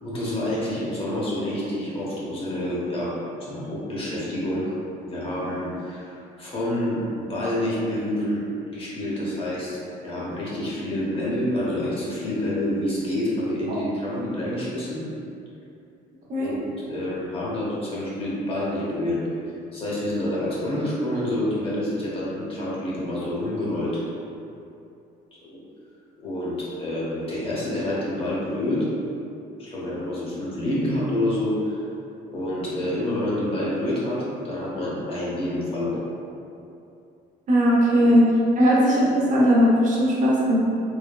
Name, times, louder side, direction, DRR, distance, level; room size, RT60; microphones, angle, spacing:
voice 1, 0.0-3.1 3.4-4.7 5.0-9.7 10.0-15.0 16.4-19.2 19.7-24.0 25.3-25.6 26.2-28.9 29.6-31.8 32.3-36.0 38.0-38.1, left 1 dB, 35° left, -7 dB, 0.8 m, -28 dB
voice 2, 37.5-38.2 38.6-40.6, equal, 50° right, -5 dB, 0.7 m, -18 dB
3.3 x 2.1 x 2.2 m, 2.6 s
cardioid pair, 110°, 17 cm